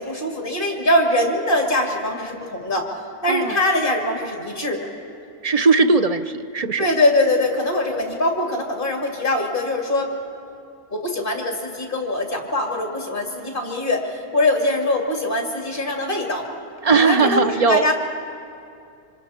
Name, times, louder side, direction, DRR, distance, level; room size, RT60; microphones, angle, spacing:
voice 1, 0.0-2.9 3.2-4.9 6.8-10.1 10.9-16.5 17.0-17.9, left 1 dB, 40° left, 1 dB, 2.7 m, -22 dB
voice 2, 3.3-3.6 5.4-6.9 16.8-17.9, right 4 dB, 50° right, 9 dB, 0.4 m, -18 dB
26.5 x 25.5 x 4.4 m, 2.5 s
omnidirectional pair, 1.4 m